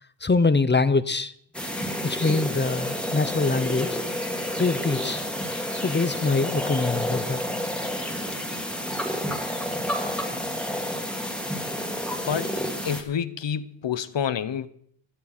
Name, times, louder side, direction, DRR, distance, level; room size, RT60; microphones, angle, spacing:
voice 1, 0.2-1.3 2.0-4.0 4.6-5.2 5.8-7.4, left 3 dB, 20° left, 0.8 m, -24 dB
sound 1, 1.5-13.0, equal, ahead, 2.2 m, -30 dB
voice 2, 12.8-14.7, left 8 dB, 60° left, 1.0 m, -28 dB
16.0 x 13.5 x 4.4 m
wide cardioid pair, 90°, 50 cm